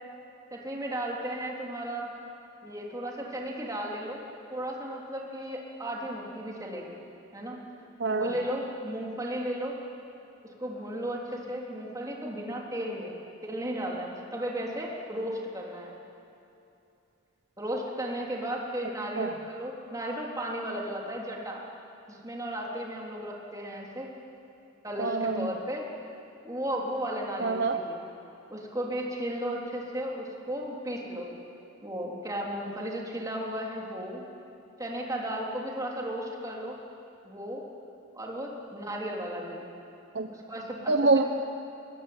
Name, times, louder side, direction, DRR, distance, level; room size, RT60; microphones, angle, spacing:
voice 1, 0.5-2.1 2.6-4.2 4.5-7.0 7.3-7.6 8.1-9.8 10.6-13.2 13.4-15.9 17.6-21.6 22.1-24.1 24.8-25.9 26.4-28.0 28.5-31.3 31.8-34.2 34.8-36.8 37.2-37.6 38.1-39.7 40.3-40.9, equal, 15° right, -2 dB, 3.7 m, -35 dB
voice 2, 8.0-8.3 19.2-19.3 25.0-25.5 27.4-27.8 40.1-40.3 40.9-41.2, right 3 dB, 60° right, 6 dB, 0.9 m, -25 dB
24.0 x 21.0 x 8.9 m, 2.7 s
head